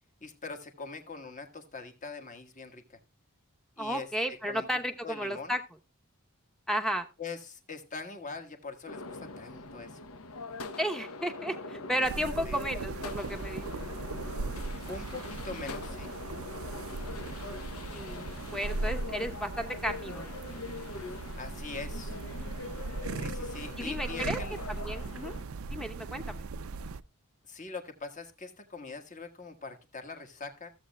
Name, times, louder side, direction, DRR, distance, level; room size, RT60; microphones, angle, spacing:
voice 1, 0.2-3.0 3.8-4.1 4.4-4.7 5.0-5.5 7.2-10.0 12.4-12.7 14.9-16.1 21.4-22.2 23.1-24.5 27.4-30.7, left 4 dB, 35° left, 6 dB, 1.4 m, -42 dB
voice 2, 3.8-5.6 6.7-7.1 10.8-13.9 17.9-20.3 23.8-24.4 24.7-25.4 25.7-26.5, equal, ahead, 5 dB, 0.8 m, -33 dB
sound 1, 8.9-25.4, left 3 dB, 75° left, 0.9 m, -42 dB
sound 2, 12.0-27.0, right 3 dB, 70° right, 0.5 m, -39 dB
15.5 x 7.3 x 2.2 m, 0.30 s
head